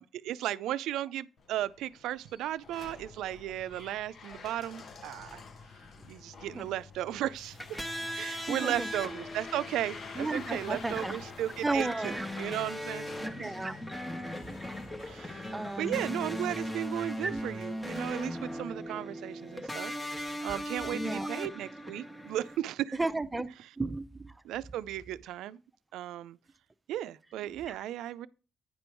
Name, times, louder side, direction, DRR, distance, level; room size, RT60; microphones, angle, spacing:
voice 1, 0.0-5.4 6.1-7.6 8.1-13.1 13.4-13.5 15.0-15.4 15.8-23.0 24.4-25.6 25.9-26.4 26.9-28.3, right 12 dB, 85° right, 0.4 m, -35 dB
sound 1, 1.4-18.9, left 4 dB, 55° left, 0.9 m, -49 dB
sound 2, 7.4-22.6, equal, 10° left, 1.0 m, -39 dB
voice 2, 8.5-8.9 10.2-11.2 11.6-12.3 13.2-13.8 14.5-14.6 15.5-16.6 17.2-17.4 20.8-21.3 22.9-23.5 23.8-24.3 27.7-27.8, right 2 dB, 15° right, 0.7 m, -34 dB
9.8 x 5.2 x 4.5 m
cardioid pair, 90°, 0 cm